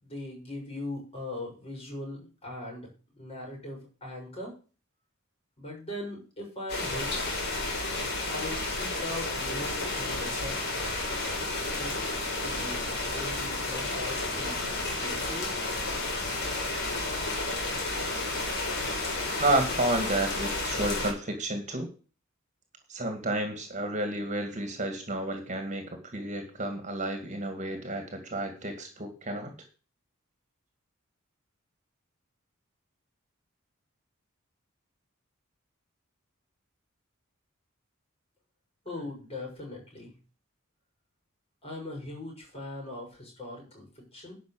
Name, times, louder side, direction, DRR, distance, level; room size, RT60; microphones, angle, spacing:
voice 1, 0.0-4.5 5.6-7.1 8.3-10.6 11.7-15.8 38.8-40.1 41.6-44.3, left 1 dB, 30° left, -1 dB, 6.9 m, -40 dB
sound 1, 6.7-21.1, left 2 dB, 55° left, 4.6 m, -31 dB
voice 2, 19.4-21.9 22.9-29.5, right 1 dB, 35° right, 5 dB, 2.2 m, -31 dB
11.5 x 6.2 x 7.5 m, 0.36 s
head